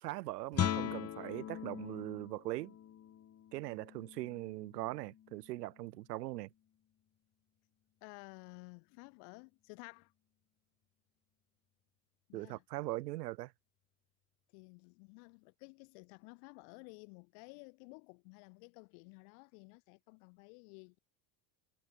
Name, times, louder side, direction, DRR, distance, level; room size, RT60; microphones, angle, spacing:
voice 1, 0.0-2.8 3.5-6.5 12.3-13.5, right 18 dB, 85° right, 1.8 m, -41 dB
Guitar, 0.5-6.1, left 10 dB, 30° left, 1.3 m, -41 dB
voice 2, 8.0-10.1 12.3-12.6 14.5-21.0, left 40 dB or more, 70° left, 6.4 m, -54 dB
supercardioid pair, 95°, 47 cm